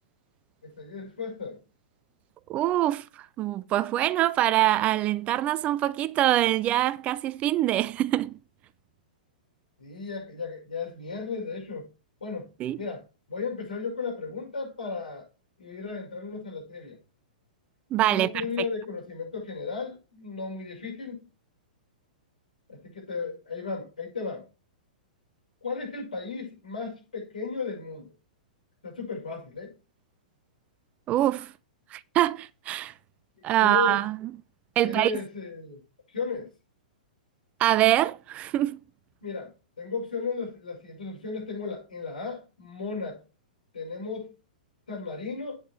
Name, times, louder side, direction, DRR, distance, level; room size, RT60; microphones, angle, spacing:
voice 1, 0.6-1.6 9.8-11.9 12.2-12.5 12.8-15.3 15.6-17.0 18.1-21.3 22.7-24.5 25.6-28.1 28.8-29.7 33.4-34.0 34.8-35.8 36.1-36.5 39.2-39.5 39.8-43.2 43.7-44.3 44.9-45.6, left 4 dB, 75° left, 6.2 m, -35 dB
voice 2, 2.5-8.3 12.6-12.8 17.9-18.3 31.1-31.5 31.9-32.9 33.4-34.3 34.8-35.1 37.6-38.8, right 14 dB, 30° right, 0.4 m, -24 dB
8.8 x 6.4 x 4.3 m
figure-of-eight pair, 110°, 5 cm